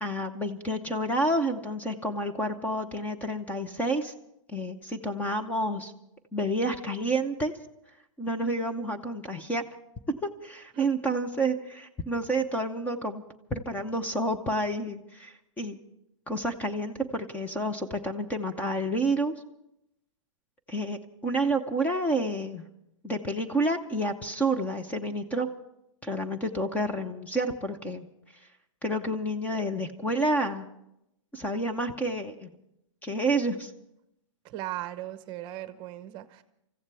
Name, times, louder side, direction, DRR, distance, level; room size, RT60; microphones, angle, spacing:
voice 1, 0.0-4.1 4.5-5.9 6.3-7.5 8.2-9.6 10.4-13.2 13.5-15.8 16.3-19.3 20.7-22.6 23.0-25.5 26.0-28.1 28.8-30.7 31.3-32.5 33.0-33.7, right 1 dB, 10° left, 0.8 m, -29 dB
voice 2, 10.7-11.2 34.4-36.4, right 14 dB, 30° right, 0.9 m, -38 dB
27.5 x 15.0 x 3.4 m
hypercardioid pair, 145°, 17 cm